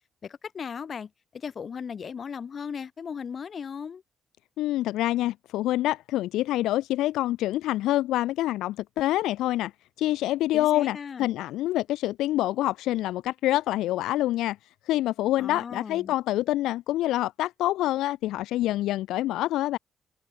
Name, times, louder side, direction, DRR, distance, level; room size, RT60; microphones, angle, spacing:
voice 1, 0.2-4.0 10.5-11.4 15.4-16.1, left 6 dB, 50° left, 1.5 m, -37 dB
voice 2, 4.6-9.7 10.0-14.6 14.9-19.8, left 15 dB, 90° left, 0.5 m, -26 dB
cardioid pair, 90°, 0 cm